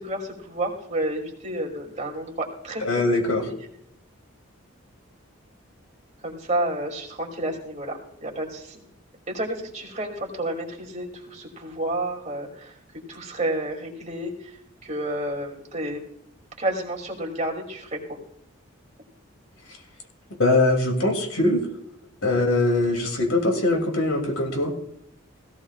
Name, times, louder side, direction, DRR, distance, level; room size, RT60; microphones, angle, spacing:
voice 1, 0.0-2.8 3.4-3.5 6.2-8.8 9.3-12.8 13.1-14.6 14.8-16.0 16.6-18.2, right 1 dB, 35° right, 0 dB, 2.6 m, -30 dB
voice 2, 2.8-3.4 20.4-21.7 22.2-24.7, left 2 dB, 80° left, 3 dB, 2.7 m, -22 dB
17.5 x 15.5 x 2.4 m, 0.75 s
head